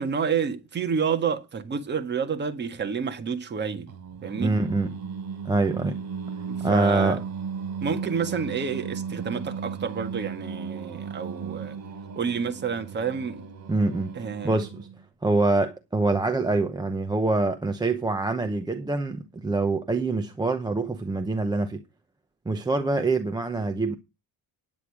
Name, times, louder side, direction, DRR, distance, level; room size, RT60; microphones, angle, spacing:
voice 1, 0.0-3.9 4.2-4.6 6.5-7.2 7.8-11.8 12.2-13.5 14.2-14.6, right 6 dB, 25° right, 1.8 m, -29 dB
Singing, 3.9-15.0, right 6 dB, 45° right, 5.1 m, -36 dB
voice 2, 4.4-4.9 5.4-6.0 6.6-7.2 13.7-14.2 14.4-14.9 15.2-21.8 22.5-23.9, right 2 dB, 10° right, 0.8 m, -25 dB
10.5 x 9.1 x 4.8 m
cardioid pair, 180°, 39 cm